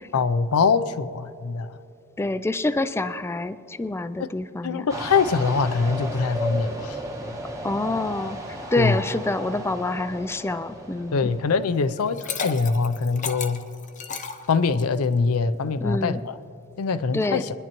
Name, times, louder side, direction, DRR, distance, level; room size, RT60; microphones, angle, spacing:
voice 1, 0.1-1.8 4.2-4.3 4.6-7.0 8.8-9.0 11.1-13.6 14.5-16.4 16.8-17.5, left 4 dB, 90° left, 0.5 m, -23 dB
voice 2, 2.2-4.9 7.6-8.4 8.7-11.3 15.8-16.2 17.1-17.5, left 2 dB, 10° left, 0.3 m, -27 dB
sound 1, 4.9-12.3, equal, 15° right, 1.0 m, -35 dB
Liquid, 12.0-15.0, left 5 dB, 35° left, 0.8 m, -33 dB
23.0 x 10.5 x 3.0 m
head